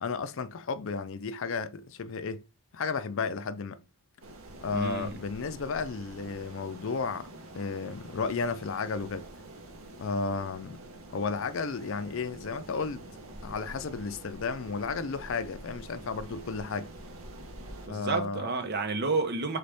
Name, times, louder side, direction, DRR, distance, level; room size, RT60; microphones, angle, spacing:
voice 1, 0.0-2.5 2.7-3.8 4.6-7.3 7.5-9.3 10.0-10.8 11.1-13.0 13.4-16.9 17.9-18.5, left 4 dB, 60° left, 0.5 m, -33 dB
sound 1, 4.2-17.9, right 1 dB, 70° right, 1.1 m, -46 dB
voice 2, 4.7-5.2 17.9-19.6, right 3 dB, 50° right, 0.9 m, -30 dB
4.1 x 3.7 x 3.4 m
head